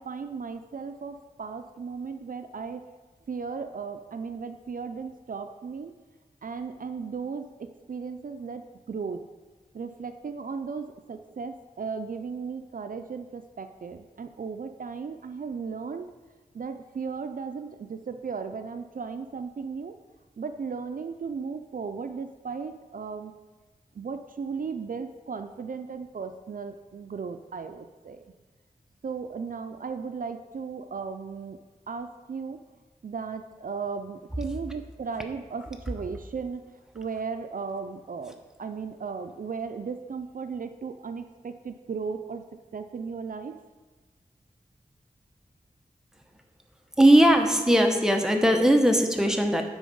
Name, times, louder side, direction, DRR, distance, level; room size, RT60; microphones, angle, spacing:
voice 1, 0.0-2.8 3.3-5.9 6.4-9.2 9.7-16.1 16.5-20.0 20.4-23.3 23.9-28.3 29.0-31.6 31.9-32.6 33.0-36.6 36.9-42.4 42.7-43.5, right 5 dB, 60° right, 8 dB, 0.4 m, -36 dB
voice 2, 47.0-49.6, right 1 dB, 5° right, 3 dB, 0.9 m, -19 dB
9.7 x 3.9 x 5.3 m, 1.4 s
wide cardioid pair, 55°, 16 cm